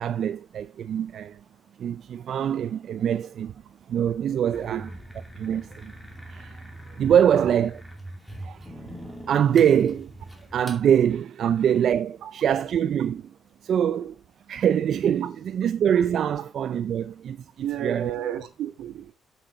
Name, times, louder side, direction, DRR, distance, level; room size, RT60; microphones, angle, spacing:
voice 1, 0.0-1.4 1.8-3.6 3.9-4.9 5.3-5.9 6.3-6.6 7.0-7.8 8.4-8.9 9.3-10.1 10.5-13.3 13.6-14.1 14.5-18.1, right 9 dB, 65° right, 0.4 m, -24 dB
sound 1, 4.5-10.8, equal, 5° left, 2.5 m, -42 dB
voice 2, 4.5-4.8 7.3-7.6 11.4-11.5 12.2-12.3 17.6-19.1, right 10 dB, 85° right, 1.3 m, -32 dB
7.7 x 6.8 x 4.8 m
cardioid pair, 90°, 0 cm